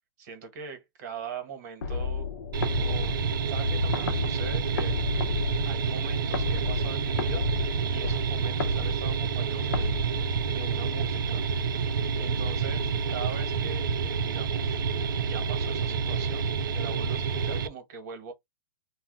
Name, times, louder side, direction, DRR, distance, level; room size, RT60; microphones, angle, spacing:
voice 1, 0.2-2.3 2.7-3.2 3.5-5.0 5.6-7.5 7.9-9.9 10.5-11.5 12.2-14.8 15.2-18.3, right 5 dB, 55° right, 1.1 m, -41 dB
sound 1, 1.8-10.9, left 4 dB, 70° left, 0.6 m, -33 dB
sound 2, 2.5-17.7, right 5 dB, 85° right, 0.4 m, -28 dB
2.2 x 2.1 x 3.8 m
hypercardioid pair, 145°, 11 cm